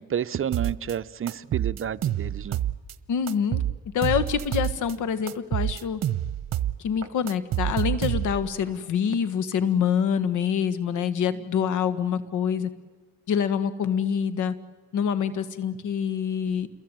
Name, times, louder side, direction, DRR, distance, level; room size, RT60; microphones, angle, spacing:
voice 1, 0.0-2.6, right 9 dB, 45° right, 14 dB, 0.8 m, -30 dB
sound 1, 0.5-0.9 1.3-2.9 3.3-4.9 5.3-6.8 7.0-8.5, right 12 dB, 60° right, 1.1 m, -27 dB
voice 2, 3.1-3.6 3.9-6.0 6.8-12.7 13.3-14.5 14.9-16.7, left 7 dB, 80° left, 14 dB, 1.8 m, -26 dB
28.0 x 22.0 x 9.2 m, 1.3 s
cardioid pair, 90°, 30 cm